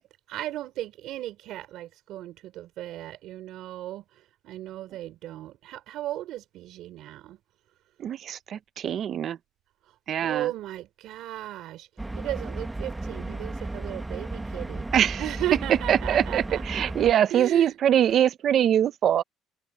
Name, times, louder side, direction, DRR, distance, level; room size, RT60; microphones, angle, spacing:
voice 1, 0.3-7.4 9.8-11.9 12.1-16.9 17.3-17.8, right 14 dB, 65° right, 4.5 m, -36 dB
voice 2, 8.0-9.4 10.1-10.5 14.9-15.2 15.9-19.2, right 10 dB, 45° right, 0.8 m, -23 dB
sound 1, 12.0-17.1, right 2 dB, 10° right, 1.3 m, -34 dB
cardioid pair, 140°, 0 cm